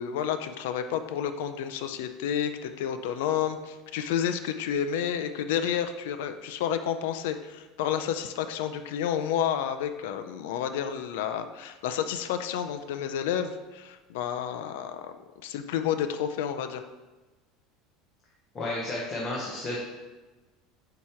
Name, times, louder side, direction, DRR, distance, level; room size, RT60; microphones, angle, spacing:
voice 1, 0.0-15.1 15.4-16.8, left 9 dB, 90° left, 8 dB, 0.5 m, -30 dB
voice 2, 18.5-19.8, left 2 dB, 20° left, -5 dB, 0.9 m, -32 dB
8.3 x 3.0 x 4.4 m, 1.2 s
cardioid pair, 175°, 0 cm